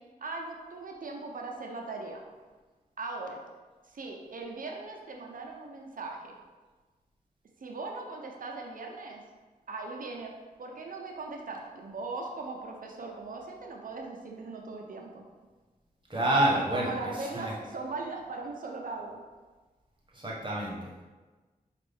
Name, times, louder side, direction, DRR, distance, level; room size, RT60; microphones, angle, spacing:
voice 1, 0.2-2.2 3.0-3.4 3.9-6.3 7.6-9.2 9.7-15.2 16.5-19.2, right 3 dB, 60° right, 1 dB, 0.6 m, -39 dB
voice 2, 16.1-16.9 17.3-17.5 20.1-21.0, right 1 dB, 30° right, -4 dB, 1.2 m, -28 dB
5.2 x 2.5 x 3.4 m, 1.3 s
cardioid pair, 60°, 16 cm